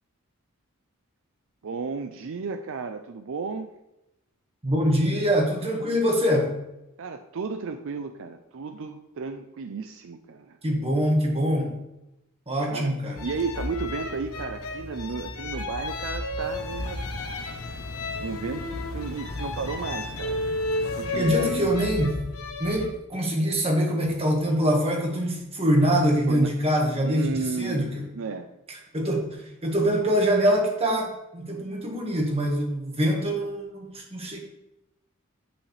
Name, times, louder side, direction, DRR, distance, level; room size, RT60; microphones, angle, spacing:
voice 1, 1.6-3.7 7.0-10.6 12.7-17.0 17.4-17.7 18.2-20.4 20.8-21.7 26.3-26.5 27.0-28.5, right 4 dB, 65° right, 8 dB, 0.5 m, -34 dB
voice 2, 4.6-6.5 10.6-11.7 12.5-13.2 21.1-22.1 22.6-27.9 28.9-34.4, equal, 30° right, 1 dB, 1.5 m, -24 dB
sound 1, 13.2-22.9, left 2 dB, 85° left, 1.0 m, -32 dB
sound 2, 16.4-21.7, left 2 dB, 65° left, 0.7 m, -40 dB
9.0 x 5.7 x 3.3 m, 0.91 s
head